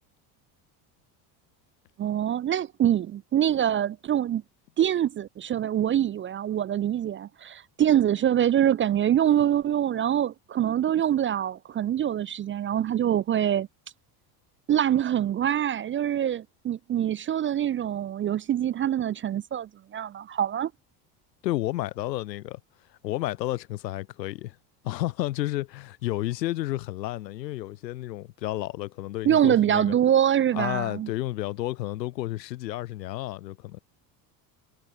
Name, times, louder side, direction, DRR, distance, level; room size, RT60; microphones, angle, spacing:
voice 1, 2.0-4.4 4.8-13.7 14.7-20.7 29.3-31.1, right 10 dB, 25° right, 0.4 m, -24 dB
voice 2, 21.4-22.6 22.9-24.6 24.8-30.0 30.5-33.8, left 16 dB, 90° left, 1.9 m, -31 dB
hypercardioid pair, 80°, 49 cm